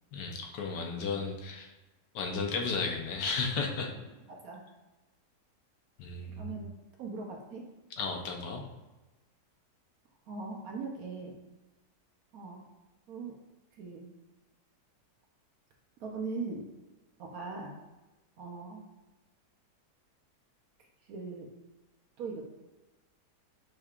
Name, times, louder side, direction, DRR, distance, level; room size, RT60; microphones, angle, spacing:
voice 1, 0.1-1.7 2.1-3.9 6.0-6.6 8.0-8.6, left 4 dB, 75° left, 2 dB, 1.3 m, -34 dB
voice 2, 4.3-4.6 6.4-6.7 7.0-7.6 10.3-11.4 12.3-12.7 13.1-13.3 13.7-14.1 16.0-16.7 17.2-17.8 18.4-18.9 21.1-21.5 22.2-22.4, right 4 dB, 65° right, 1 dB, 1.0 m, -40 dB
6.4 x 3.4 x 2.4 m, 1.1 s
omnidirectional pair, 1.9 m